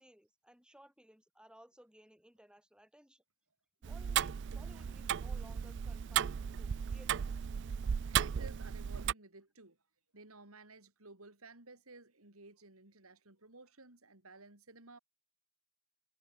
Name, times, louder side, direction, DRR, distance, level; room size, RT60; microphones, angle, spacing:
voice 1, 0.0-3.2 3.8-7.3, equal, 5° right, 6.6 m, -60 dB
Tick-tock, 3.8-9.1, right 8 dB, 55° right, 0.4 m, -35 dB
voice 2, 8.1-9.8 10.1-15.0, right 3 dB, 80° right, 4.7 m, -55 dB
head